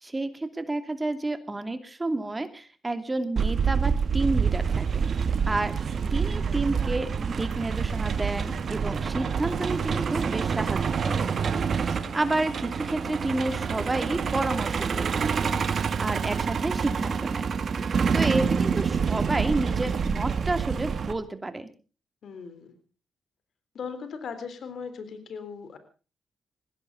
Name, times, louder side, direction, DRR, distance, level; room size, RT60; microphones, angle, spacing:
voice 1, 0.0-5.1 5.5-5.8 6.1-11.2 12.1-17.5 18.1-21.7, right 2 dB, 25° right, 9 dB, 2.6 m, -30 dB
Truck, 3.4-21.1, right 6 dB, 60° right, 1.8 m, -27 dB
voice 2, 11.7-12.2 22.2-22.8 23.7-25.8, left 6 dB, 70° left, 11 dB, 3.7 m, -39 dB
21.0 x 16.5 x 4.0 m, 0.35 s
supercardioid pair, 50°, 0 cm